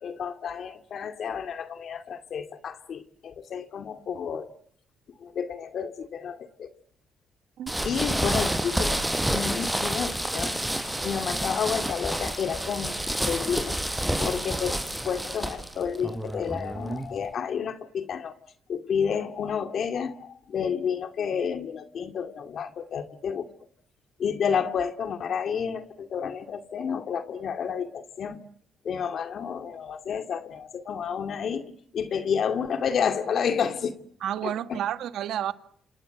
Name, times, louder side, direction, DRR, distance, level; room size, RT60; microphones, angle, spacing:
voice 1, 0.0-4.5 5.2-6.7 7.8-10.6 11.0-13.8 14.2-18.3 18.7-23.5 24.2-28.4 28.8-31.6 31.9-34.0 34.4-34.8, left 7 dB, 60° left, 2.2 m, -30 dB
voice 2, 7.6-7.9 34.2-35.5, right 11 dB, 80° right, 1.7 m, -31 dB
sound 1, 7.7-17.3, right 1 dB, 5° right, 5.3 m, -29 dB
28.5 x 26.5 x 7.9 m
cardioid pair, 90°, 0 cm